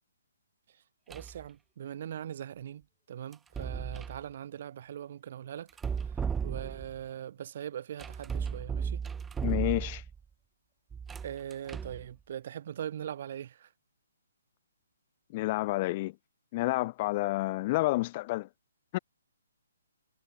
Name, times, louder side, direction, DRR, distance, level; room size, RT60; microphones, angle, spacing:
sound 1, 1.1-1.4 3.3-4.2 5.7-7.0 8.0-10.2 10.9-12.0, right 6 dB, 10° right, 0.7 m, -35 dB
voice 1, 1.1-5.7 6.4-9.0 11.2-13.7, right 10 dB, 50° right, 3.1 m, -41 dB
voice 2, 9.4-10.0 15.3-16.1 16.5-18.5 18.9-19.0, left 19 dB, 35° left, 0.9 m, -29 dB
figure-of-eight pair, 140°, 0 cm